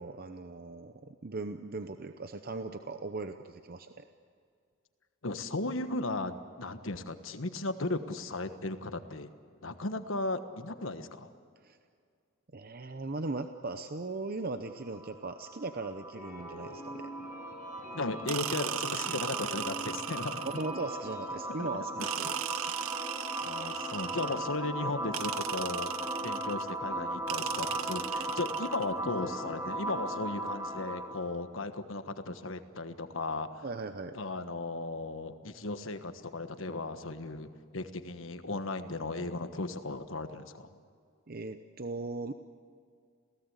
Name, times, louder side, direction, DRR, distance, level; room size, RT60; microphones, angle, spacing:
voice 1, 0.0-4.0 11.6-11.8 12.5-17.1 20.4-22.4 33.6-34.2 41.3-42.3, right 3 dB, 50° right, 8 dB, 0.8 m, -38 dB
voice 2, 5.2-9.3 9.6-11.3 17.9-20.4 21.6-22.1 22.6-22.7 23.4-25.9 26.2-33.7 34.1-40.7, left 2 dB, 70° left, 9 dB, 1.4 m, -36 dB
sound 1, 14.6-31.3, right 1 dB, 15° right, 2.6 m, -38 dB
sound 2, 16.1-21.6, equal, 40° left, 7.6 m, -47 dB
sound 3, 18.3-20.8 22.0-24.6 25.1-26.7 27.3-28.9, right 10 dB, 85° right, 0.6 m, -37 dB
28.0 x 17.5 x 8.2 m, 2.3 s
head